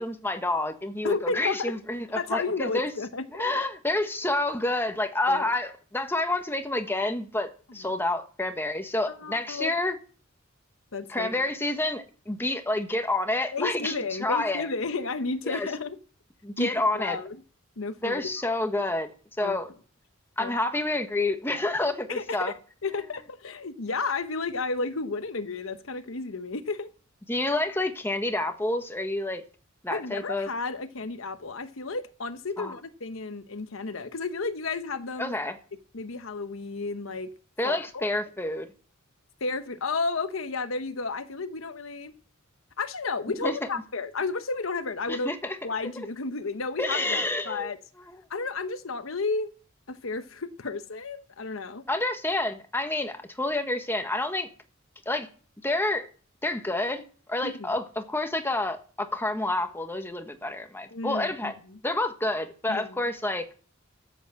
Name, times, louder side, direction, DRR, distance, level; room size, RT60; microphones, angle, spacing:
voice 1, 0.0-2.9 3.3-10.0 11.1-13.9 14.2-14.7 15.5-15.7 16.4-17.2 18.0-19.1 19.4-19.7 20.4-22.5 27.3-29.4 29.8-30.5 32.6-32.7 35.2-35.5 37.6-38.7 43.4-43.6 45.1-45.6 46.8-47.7 48.1-48.2 51.9-54.5 55.0-55.3 55.6-56.1 56.4-61.5 61.8-63.4, left 2 dB, 10° left, 1.3 m, -28 dB
voice 2, 1.0-1.7 2.2-3.3 5.3-5.5 9.1-9.7 10.9-11.3 13.5-16.0 16.6-17.4 17.8-18.2 19.4-19.6 20.4-20.5 22.1-22.5 22.8-26.9 29.9-35.3 35.9-37.3 37.6-38.0 39.4-42.1 42.8-45.3 45.6-47.8 48.3-49.5 49.9-51.9 57.4-57.7 60.9-61.5 62.7-63.0, left 3 dB, 70° left, 1.0 m, -32 dB
13.0 x 8.3 x 7.6 m
head